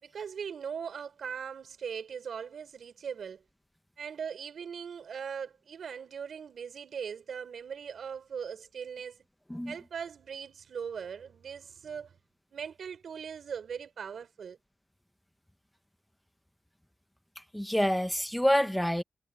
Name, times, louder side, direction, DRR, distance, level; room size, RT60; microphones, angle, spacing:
voice 1, 0.0-3.4 4.0-9.2 9.7-12.2 12.5-14.6, right 7 dB, 75° right, 5.9 m, -40 dB
voice 2, 17.4-19.0, equal, 5° left, 1.0 m, -27 dB
wide cardioid pair, 130°, 0 cm